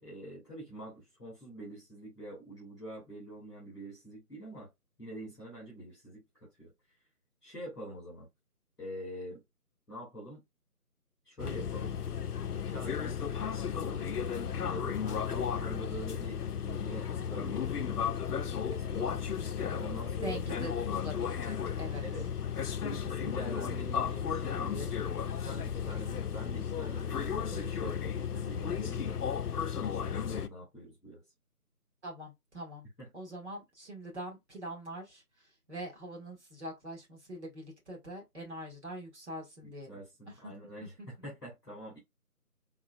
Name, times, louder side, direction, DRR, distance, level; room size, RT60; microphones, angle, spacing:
voice 1, 0.0-4.7 5.0-6.2 6.6-6.7 7.4-8.3 8.8-9.4 9.9-10.4 11.2-12.0 12.5-13.5 13.7-19.2 19.7-20.6 22.0-22.3 22.8-24.9 25.4-29.2 29.7-31.2 33.0-33.1 39.6-42.0, right 1 dB, ahead, 1.0 m, -45 dB
sound 1, 11.4-30.5, left 7 dB, 75° left, 0.6 m, -34 dB
voice 2, 20.2-20.7 21.0-22.0 32.0-32.8 33.1-35.2 35.7-40.0 40.4-40.5, right 1 dB, 45° right, 2.0 m, -43 dB
3.8 x 3.3 x 2.3 m
figure-of-eight pair, 165°, 46 cm